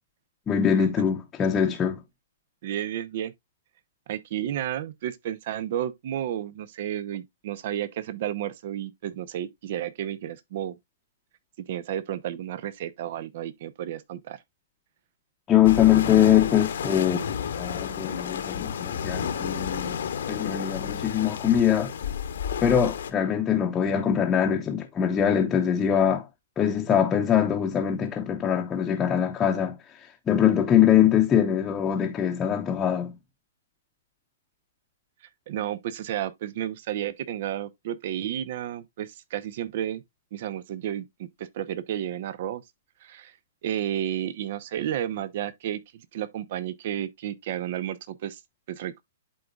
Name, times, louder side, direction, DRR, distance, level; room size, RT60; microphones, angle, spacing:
voice 1, 0.5-2.0 15.5-20.0 20.3-21.9 22.6-26.3 26.6-33.2, left 9 dB, 20° left, 0.8 m, -23 dB
voice 2, 2.6-3.3 4.1-10.8 11.7-14.4 35.5-40.0 40.3-42.6 43.0-43.3 43.6-45.8 46.1-48.4 48.7-49.0, right 11 dB, 50° right, 0.7 m, -32 dB
sound 1, 15.6-23.1, left 7 dB, 65° left, 1.0 m, -31 dB
11.5 x 3.9 x 2.3 m
figure-of-eight pair, 120°, 0 cm